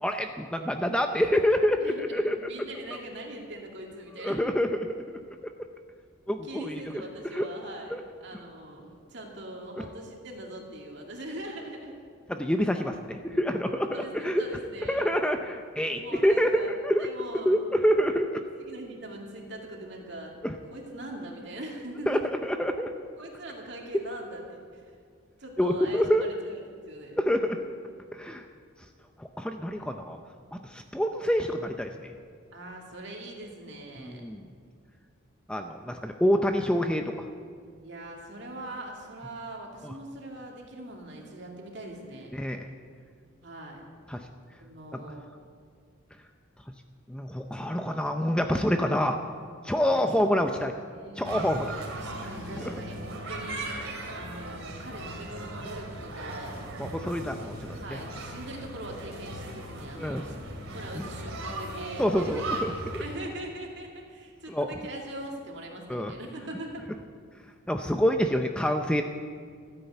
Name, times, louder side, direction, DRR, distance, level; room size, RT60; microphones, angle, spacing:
voice 1, 0.0-2.5 4.2-5.4 6.3-6.8 7.3-7.5 7.9-8.0 12.3-14.4 14.9-17.1 17.5-18.4 20.4-20.5 22.1-22.9 25.6-26.3 27.2-27.6 28.1-28.4 29.2-30.2 30.5-32.1 34.0-34.5 35.5-37.3 39.8-39.9 42.3-42.7 44.1-44.3 44.9-45.0 47.1-49.2 49.6-50.7 51.2-51.7 52.6-52.7 56.8-57.8 60.0-60.2 61.0-61.1 62.0-63.0 64.5-64.7 65.9-66.1 67.7-69.0, equal, 5° left, 5 dB, 0.5 m, -27 dB
voice 2, 1.8-4.4 6.4-12.0 13.9-15.1 16.0-16.7 17.0-17.6 18.6-20.4 20.7-22.3 23.2-24.8 25.4-27.3 32.5-34.2 37.8-42.3 43.4-43.8 44.6-45.2 49.9-50.5 50.9-51.6 51.9-53.7 54.1-56.6 57.8-60.4 60.7-62.4 63.0-66.8, right 1 dB, 55° right, 0 dB, 2.4 m, -41 dB
sound 1, 51.2-63.2, right 2 dB, 85° right, 2.7 m, -38 dB
14.0 x 9.7 x 8.0 m, 2.1 s
head